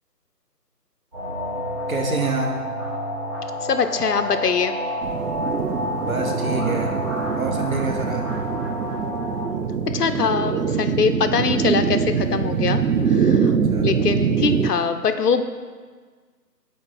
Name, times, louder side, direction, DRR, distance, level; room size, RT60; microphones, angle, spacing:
sound 1, 1.1-9.5, equal, 15° right, 1.7 m, -29 dB
voice 1, 1.9-2.6 6.0-7.0 7.3-8.3 13.5-13.9, right 3 dB, 55° right, 2 dB, 0.9 m, -27 dB
voice 2, 3.6-4.7 9.9-13.5 13.8-15.4, left 6 dB, 70° left, 9 dB, 0.5 m, -23 dB
sound 2, 5.0-14.7, right 6 dB, 85° right, 0.6 m, -23 dB
6.4 x 4.2 x 4.0 m, 1.5 s
figure-of-eight pair, 160°, 50 cm